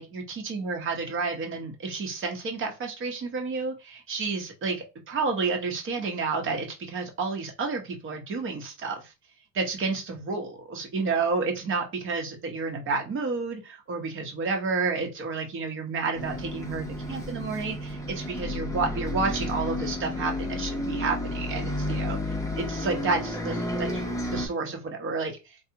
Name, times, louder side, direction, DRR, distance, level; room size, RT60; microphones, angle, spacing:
voice 1, 0.0-9.1 9.5-22.2 22.5-25.4, right 4 dB, 30° right, 1.1 m, -30 dB
Bus, 16.2-24.5, left 1 dB, 10° left, 0.8 m, -31 dB
3.3 x 2.4 x 2.9 m
supercardioid pair, 110°, 40 cm